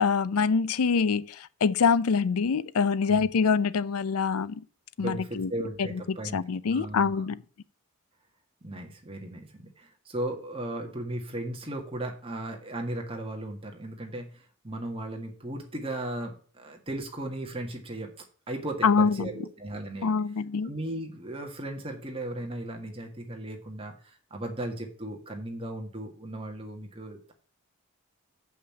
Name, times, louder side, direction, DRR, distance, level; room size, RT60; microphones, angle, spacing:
voice 1, 0.0-4.6 5.0-5.5 5.8-7.4 18.8-19.3 20.0-20.7, left 5 dB, 85° left, 0.5 m, -25 dB
voice 2, 5.0-6.4 6.7-7.2 8.6-18.1 18.5-20.1 20.6-27.3, right 1 dB, 25° right, 1.7 m, -36 dB
7.4 x 5.7 x 6.9 m
head